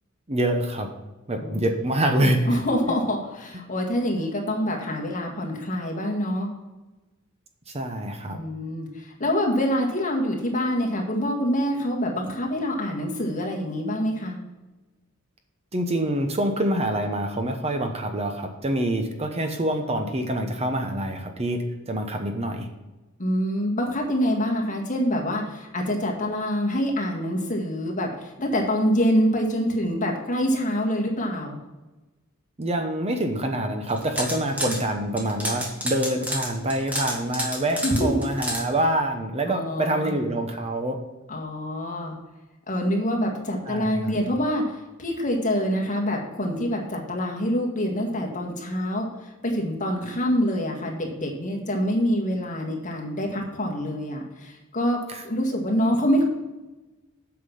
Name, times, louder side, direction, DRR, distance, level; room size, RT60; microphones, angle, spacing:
voice 1, 0.3-0.9 1.3-2.6 7.7-8.4 15.7-22.7 32.6-41.0 43.7-44.3 55.1-55.2, right 1 dB, 30° right, 5 dB, 0.9 m, -26 dB
voice 2, 2.5-6.5 8.3-14.4 23.2-31.6 37.8-38.3 39.5-40.2 41.3-42.2 42.7-44.6 45.0-49.1 49.4-55.0 55.2-56.2, equal, 35° left, 0 dB, 1.8 m, -26 dB
sound 1, 33.9-34.8 35.2-38.6, equal, 5° right, 1.8 m, -29 dB
8.2 x 5.9 x 5.6 m, 1.1 s
head